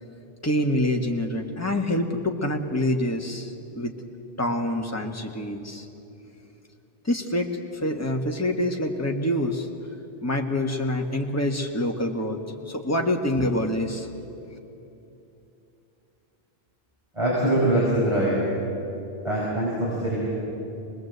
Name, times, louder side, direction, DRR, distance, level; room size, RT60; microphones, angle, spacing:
voice 1, 0.4-3.9 4.4-5.9 7.0-7.5 7.8-9.7 10.2-12.4 12.7-14.1, left 1 dB, 15° left, 1 dB, 1.6 m, -26 dB
voice 2, 17.1-18.4 19.2-20.3, right 1 dB, 30° right, -7 dB, 5.5 m, -23 dB
25.0 x 19.5 x 8.1 m, 2.9 s
omnidirectional pair, 1.0 m